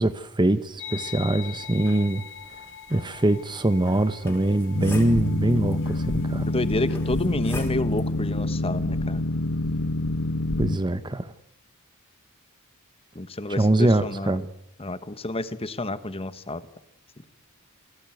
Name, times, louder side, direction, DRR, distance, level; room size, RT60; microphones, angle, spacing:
voice 1, 0.0-2.2 2.9-6.5 10.6-11.3 13.5-14.5, right 1 dB, 20° right, 0.9 m, -23 dB
sound 1, 0.8-7.3, left 9 dB, 60° left, 4.4 m, -43 dB
sound 2, 4.3-5.7 6.9-8.1, left 1 dB, 10° left, 4.9 m, -38 dB
Boat Water vehicle, 4.7-10.8, left 2 dB, 85° left, 1.2 m, -27 dB
voice 2, 6.5-9.2 13.1-14.4 14.8-16.6, left 2 dB, 25° left, 1.3 m, -29 dB
28.5 x 17.5 x 9.2 m
head